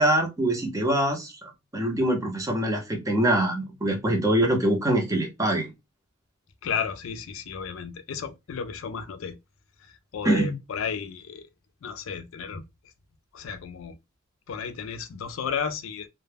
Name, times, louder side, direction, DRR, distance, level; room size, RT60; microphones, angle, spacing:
voice 1, 0.0-5.7 10.2-10.6, right 1 dB, 15° right, 0.6 m, -24 dB
voice 2, 6.6-9.4 10.1-11.4 11.8-12.6 13.3-14.0 14.5-16.1, left 6 dB, 65° left, 0.4 m, -33 dB
2.1 x 2.1 x 3.3 m
head